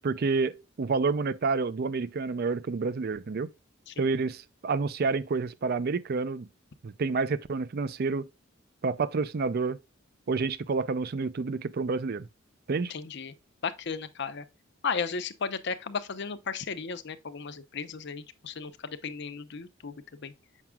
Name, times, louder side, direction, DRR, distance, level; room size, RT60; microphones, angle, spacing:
voice 1, 0.0-3.5 4.0-6.5 6.8-8.3 8.8-9.8 10.3-12.3 12.7-12.9, right 4 dB, 50° right, 0.5 m, -29 dB
voice 2, 12.9-13.3 13.6-14.4 14.8-20.3, left 5 dB, 60° left, 0.7 m, -35 dB
7.4 x 5.8 x 2.3 m
head